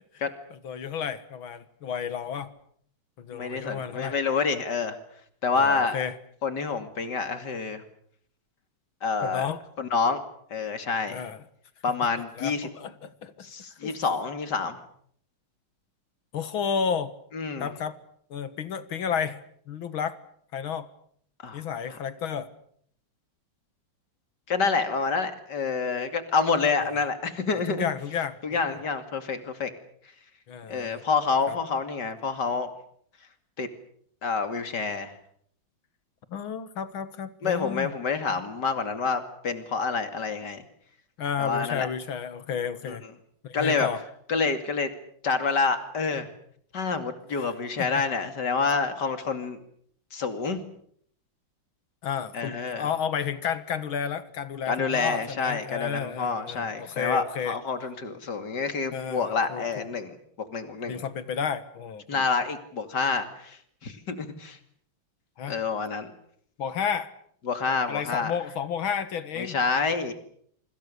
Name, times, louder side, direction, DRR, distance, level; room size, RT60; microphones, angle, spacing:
voice 1, 0.5-2.5 3.2-4.2 5.6-6.1 9.2-9.6 11.1-11.4 12.3-13.5 13.8-13.9 16.3-17.1 17.6-18.0 18.3-20.2 20.5-20.9 21.5-22.5 27.7-28.6 30.5-31.0 31.5-31.6 36.3-37.9 41.2-43.0 43.4-44.0 47.3-47.5 47.8-48.1 52.0-57.6 58.9-59.9 60.9-62.3 65.4-65.6 66.6-67.1 67.9-69.6, left 7 dB, 80° left, 13 dB, 2.4 m, -32 dB
voice 2, 3.3-5.0 5.4-6.0 6.4-7.8 9.0-9.5 9.8-10.2 10.5-11.2 11.8-12.7 13.4-14.8 17.3-17.7 21.4-21.6 24.5-27.9 28.4-29.7 30.7-32.7 33.6-33.7 34.2-35.1 37.4-40.6 41.4-41.9 42.8-43.0 43.5-43.9 44.3-44.9 45.2-46.3 46.7-49.6 50.1-50.6 52.3-52.9 54.7-60.2 60.5-61.0 62.1-64.6 65.5-66.1 67.4-68.3 69.4-70.1, left 4 dB, 55° left, 9 dB, 3.1 m, -28 dB
27.0 x 25.5 x 6.8 m, 0.65 s
omnidirectional pair, 2.2 m